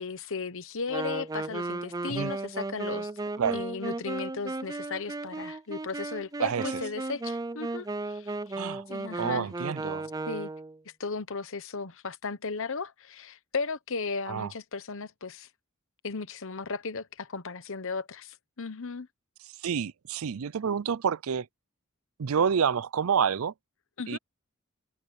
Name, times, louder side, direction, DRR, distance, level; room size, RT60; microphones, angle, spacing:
voice 1, 0.0-3.1 3.5-8.6 8.9-9.5 10.3-10.5 11.0-15.5 16.0-19.1 24.0-24.2, left 4 dB, 65° left, 1.1 m, -36 dB
Wind instrument woodwind instrument, 0.9-10.8, right 2 dB, 15° right, 0.5 m, -35 dB
voice 2, 6.4-6.8 8.6-8.8 9.2-10.1 14.3-14.5 19.6-21.5 22.2-23.5 24.1-24.2, right 7 dB, 70° right, 0.5 m, -28 dB
head